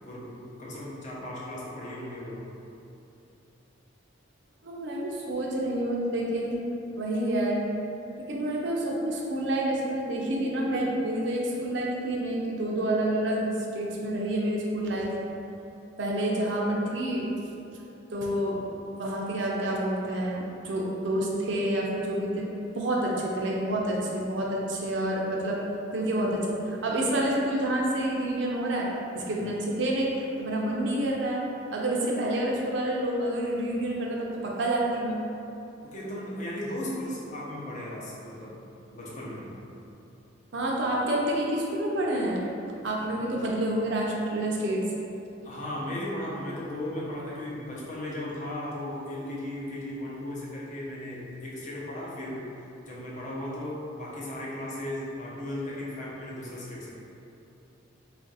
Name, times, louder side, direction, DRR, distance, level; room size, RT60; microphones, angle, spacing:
voice 1, 0.0-2.4 29.3-29.4 35.8-38.5 38.9-39.5 43.1-43.2 45.4-52.4 52.8-56.9, left 1 dB, 35° left, -6 dB, 0.6 m, -36 dB
voice 2, 4.6-6.6 7.0-7.6 8.3-15.1 16.0-17.3 18.1-18.6 18.9-22.5 22.7-25.6 25.9-28.9 29.1-31.4 31.7-35.2 40.5-42.4 42.8-44.8, right 1 dB, 60° right, -3 dB, 0.5 m, -28 dB
3.3 x 2.5 x 3.9 m, 2.8 s
head